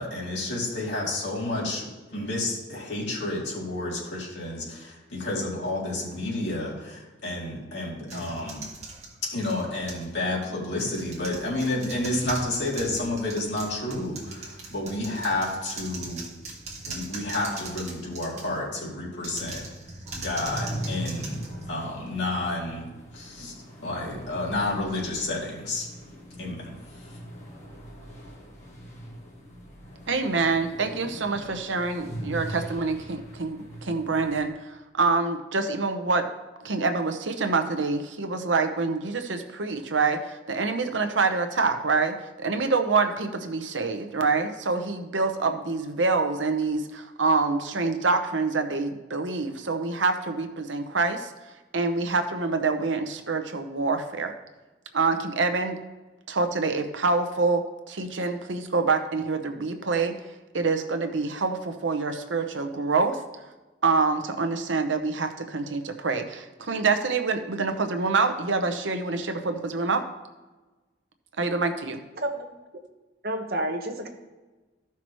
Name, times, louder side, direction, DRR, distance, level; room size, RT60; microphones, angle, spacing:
voice 1, 0.0-8.6 9.3-16.2 16.8-19.6 20.1-21.4 21.7-22.9 23.1-23.5 23.8-25.9 26.4-26.8, left 2 dB, 75° left, -4 dB, 2.6 m, -30 dB
sound 1, 8.1-10.1 10.7-18.6 19.2-22.1, right 3 dB, 35° right, 1.5 m, -40 dB
sound 2, 20.3-34.5, right 1 dB, 40° left, 1.6 m, -40 dB
voice 2, 30.1-36.2 36.6-51.3 51.7-54.3 54.9-55.8 56.3-60.1 60.5-63.2 63.8-70.0 71.4-72.0, right 4 dB, 90° right, 7 dB, 0.9 m, -26 dB
voice 3, 72.2-72.5 72.7-72.8 73.2-74.1, right 1 dB, 55° right, 4 dB, 1.1 m, -30 dB
14.5 x 5.8 x 3.1 m, 1.2 s
head